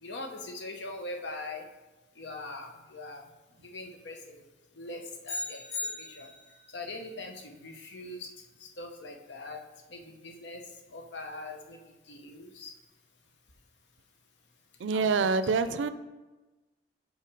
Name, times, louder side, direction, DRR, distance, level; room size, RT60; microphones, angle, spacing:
voice 1, 0.0-1.6 2.2-3.2 3.6-4.4 4.8-5.6 6.0-6.3 6.7-8.3 8.6-9.6 9.9-10.6 10.9-11.8 12.1-12.7 14.9-15.3, left 2 dB, 75° left, 3 dB, 0.8 m, -41 dB
sound 1, 5.2-6.7, left 2 dB, 40° left, 2.1 m, -37 dB
voice 2, 14.8-15.9, right 4 dB, 90° right, 13 dB, 0.4 m, -26 dB
5.7 x 5.6 x 4.8 m, 1.2 s
head